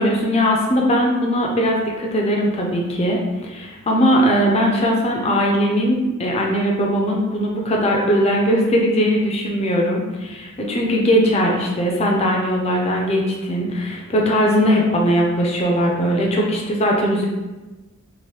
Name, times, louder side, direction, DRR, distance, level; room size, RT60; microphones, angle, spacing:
voice 1, 0.0-17.2, equal, 30° left, -1 dB, 0.4 m, -19 dB
2.9 x 2.6 x 3.1 m, 1.1 s
head